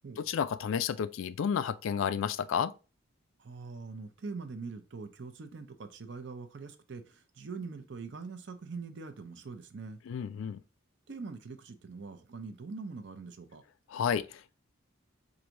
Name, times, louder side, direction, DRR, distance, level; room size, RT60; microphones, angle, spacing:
voice 1, 0.2-2.7 10.1-10.6 13.9-14.5, left 7 dB, 75° left, 0.3 m, -31 dB
voice 2, 3.4-10.0 11.1-13.6, right 4 dB, 55° right, 0.5 m, -43 dB
4.6 x 2.6 x 2.8 m
head